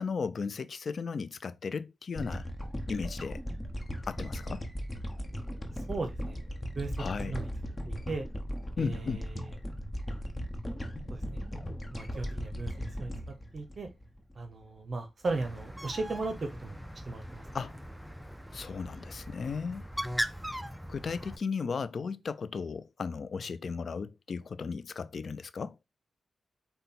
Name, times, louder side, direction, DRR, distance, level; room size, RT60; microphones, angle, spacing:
voice 1, 0.0-2.5 2.9-3.4 4.1-4.6 7.0-7.4 8.8-9.3 17.5-17.8 18.5-19.9 20.9-25.8, left 5 dB, 65° left, 0.4 m, -35 dB
sound 1, 2.2-14.6, equal, 25° left, 1.0 m, -38 dB
voice 2, 5.7-6.4 6.8-6.9 7.3-7.5 7.9-8.3 8.8-9.4 11.1-11.4 11.9-12.7 13.0-13.9 14.4-16.8 17.1-17.5, right 3 dB, 55° right, 0.7 m, -36 dB
Bird, 15.3-21.4, equal, ahead, 0.5 m, -39 dB
5.2 x 2.3 x 4.1 m
cardioid pair, 45°, 0 cm